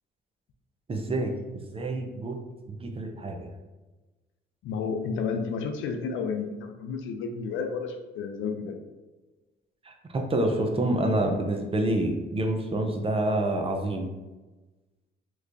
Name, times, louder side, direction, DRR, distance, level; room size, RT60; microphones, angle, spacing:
voice 1, 0.9-1.3 1.7-2.4 2.7-3.5 9.8-14.1, right 1 dB, 30° right, 3 dB, 0.5 m, -27 dB
voice 2, 4.6-8.8, left 5 dB, 80° left, 5 dB, 0.5 m, -31 dB
3.3 x 3.0 x 2.5 m, 1.2 s
cardioid pair, 90°, 20 cm